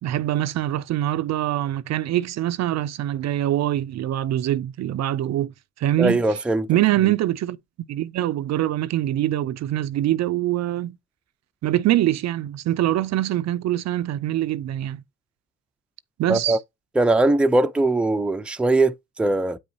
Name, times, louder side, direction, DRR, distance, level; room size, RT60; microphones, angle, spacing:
voice 1, 0.0-5.5 5.8-6.2 6.7-7.6 7.9-11.0 11.6-15.0 16.2-16.6, right 13 dB, 60° right, 0.5 m, -24 dB
voice 2, 6.0-6.7 16.3-16.6 17.0-19.6, right 2 dB, 5° right, 0.4 m, -20 dB
8.5 x 5.3 x 2.7 m
cardioid pair, 90°, 30 cm